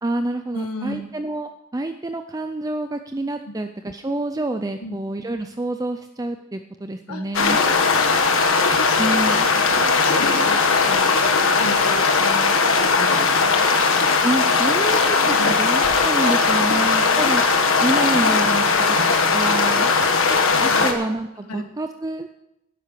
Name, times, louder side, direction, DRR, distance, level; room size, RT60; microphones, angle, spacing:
voice 1, 0.0-7.6 9.0-9.4 14.2-17.4 17.8-19.0 19.3-19.9 20.8-22.3, right 2 dB, 15° right, 8 dB, 0.4 m, -27 dB
voice 2, 0.5-1.0 3.4-3.5 4.8-5.0 7.1-13.8 15.4-15.5 17.1-17.2 20.5-20.9 21.5-21.7, left 2 dB, 90° left, 6 dB, 1.6 m, -33 dB
sound 1, 7.3-20.9, left 4 dB, 60° left, 1.5 m, -18 dB
12.0 x 10.5 x 6.7 m, 0.89 s
head